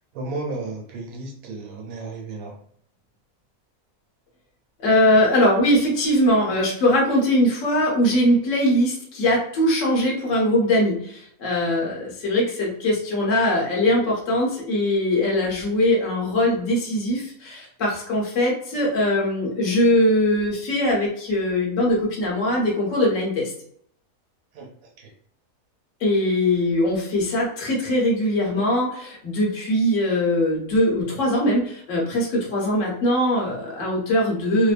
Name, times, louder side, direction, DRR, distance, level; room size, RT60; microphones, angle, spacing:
voice 1, 0.1-2.6 24.5-24.7 25.0-25.1, right 3 dB, 85° right, 1 dB, 1.2 m, -33 dB
voice 2, 4.8-23.5 26.0-34.7, left 1 dB, 60° left, -3 dB, 1.2 m, -21 dB
2.8 x 2.1 x 2.4 m, 0.66 s
omnidirectional pair, 1.6 m